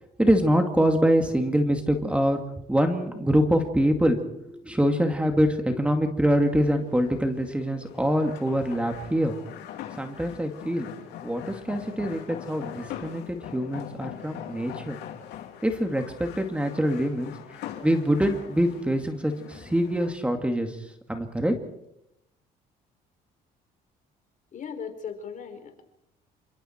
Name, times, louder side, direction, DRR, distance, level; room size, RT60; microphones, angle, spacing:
voice 1, 0.2-2.4 2.7-9.3 9.9-10.9 11.2-15.0 15.6-17.3 17.8-21.5, equal, 5° right, 5 dB, 2.4 m, -24 dB
sound 1, 6.4-20.1, left 10 dB, 85° left, 3.3 m, -42 dB
voice 2, 24.5-25.8, left 6 dB, 50° left, 7 dB, 4.3 m, -37 dB
28.5 x 25.0 x 4.6 m, 0.82 s
cardioid pair, 110°, 17 cm